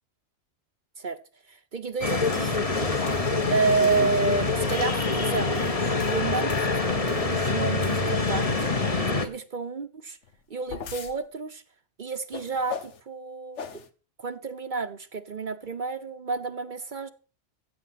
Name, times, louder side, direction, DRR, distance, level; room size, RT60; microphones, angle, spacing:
voice 1, 1.5-3.1 3.5-6.5 6.8-8.7 9.1-10.2 10.5-11.6 12.0-13.6 14.2-17.1, right 4 dB, 45° right, 11 dB, 0.9 m, -30 dB
sound 1, 2.0-9.3, left 3 dB, 30° left, 1.4 m, -25 dB
sound 2, 2.3-2.5 3.1-3.3 3.8-4.1 4.7-4.9 5.4-7.4 7.8-8.3 10.2-11.2 12.3-13.0 13.6-13.9, left 6 dB, 80° left, 1.4 m, -40 dB
15.0 x 8.2 x 5.7 m, 0.37 s
omnidirectional pair, 1.2 m